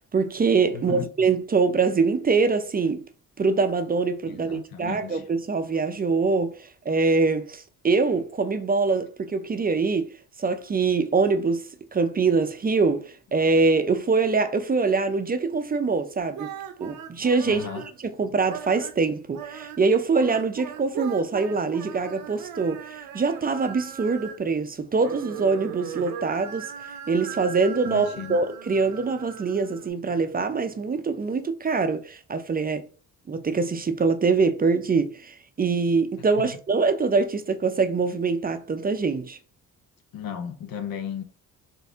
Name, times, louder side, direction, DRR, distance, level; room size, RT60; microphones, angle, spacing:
voice 1, 0.1-3.0 3.4-10.1 10.4-11.6 11.9-16.5 16.8-17.7 18.2-26.7 27.1-32.9 33.3-39.4, right 4 dB, 25° right, 0.5 m, -24 dB
voice 2, 0.7-1.1 4.3-5.2 17.5-17.8 27.9-28.4 36.4-36.6 40.1-41.2, left 8 dB, 80° left, 0.8 m, -35 dB
sound 1, 16.2-18.0 18.4-19.0 19.3-24.5 24.8-29.9, right 8 dB, 75° right, 0.7 m, -39 dB
4.2 x 2.6 x 3.5 m
cardioid pair, 85°, 35 cm